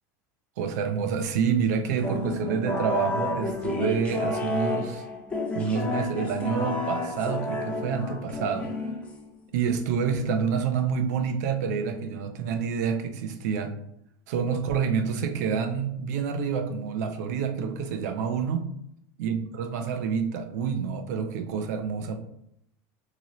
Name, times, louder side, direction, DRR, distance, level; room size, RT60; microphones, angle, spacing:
voice 1, 0.6-5.0 5.5-8.7 9.5-13.7 14.3-18.7 19.2-22.2, right 6 dB, 80° right, 7 dB, 0.6 m, -28 dB
sound 1, 2.0-9.4, left 2 dB, 15° left, 0.7 m, -31 dB
3.7 x 2.9 x 3.0 m, 0.75 s
supercardioid pair, 140°, 9 cm